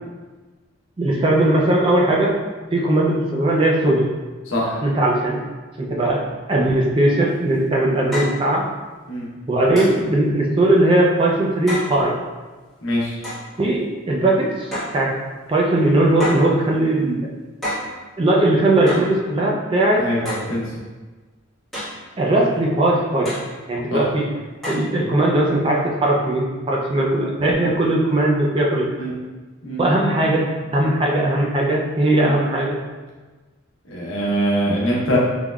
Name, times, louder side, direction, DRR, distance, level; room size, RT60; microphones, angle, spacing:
voice 1, 1.0-2.4 2.7-4.1 4.8-5.4 5.8-8.7 9.5-12.1 13.6-15.2 15.5-17.2 18.2-20.0 22.2-24.3 24.7-28.9 29.8-32.8, right 1 dB, 25° right, -2 dB, 0.4 m, -19 dB
voice 2, 4.5-4.8 9.1-9.3 12.8-13.2 20.0-20.8 23.9-24.0 29.0-29.1 29.6-29.9 33.9-35.2, equal, 70° left, -5 dB, 0.9 m, -23 dB
sound 1, 7.3-7.4 8.1-8.4 9.8-10.0 11.7-11.9 13.2-13.5 14.7-15.0 16.2-16.5 17.6-17.9 18.9-19.1 20.2-20.5 21.7-22.0 23.2-23.5 24.6-24.9, left 1 dB, ahead, 1.3 m, -28 dB
3.5 x 3.1 x 2.3 m, 1.3 s
head